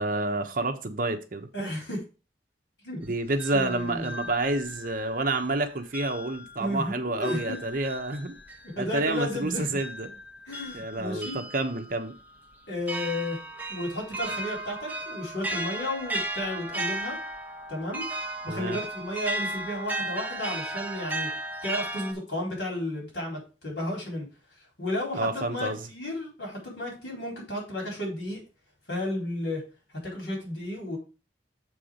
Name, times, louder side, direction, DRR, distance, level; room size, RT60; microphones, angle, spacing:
voice 1, 0.0-1.5 3.0-8.4 8.8-10.1 10.7-12.1 18.5-18.8 25.1-25.9, right 2 dB, 50° right, 6 dB, 1.1 m, -29 dB
voice 2, 1.5-2.0 2.8-3.0 3.5-4.1 6.6-7.6 8.8-9.7 10.5-11.4 12.7-13.4 13.7-17.2 17.7-18.1 18.4-21.3 21.6-24.3 24.8-28.4 28.9-29.6 30.0-31.0, left 1 dB, 85° left, -1 dB, 4.1 m, -33 dB
sound 1, 3.0-5.6 5.9-22.1, right 1 dB, 10° right, 1.0 m, -36 dB
7.0 x 4.8 x 5.1 m, 0.32 s
head